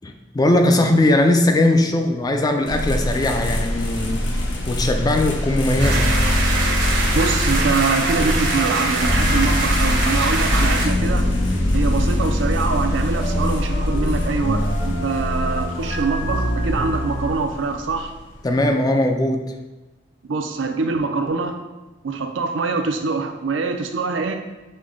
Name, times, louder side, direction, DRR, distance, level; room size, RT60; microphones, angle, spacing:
voice 1, 0.0-6.1 18.4-19.4, left 1 dB, 20° left, 5 dB, 0.3 m, -19 dB
sound 1, 2.7-18.7, left 1 dB, 85° left, 0.8 m, -26 dB
sound 2, 5.8-17.3, left 1 dB, 55° left, 1.3 m, -24 dB
sound 3, 5.8-10.9, right 3 dB, 65° right, 0.9 m, -24 dB
voice 2, 7.1-11.3 11.7-18.1 20.3-21.6 22.0-24.3, right 4 dB, 80° right, 6 dB, 0.5 m, -24 dB
6.4 x 2.2 x 3.6 m, 1.1 s
head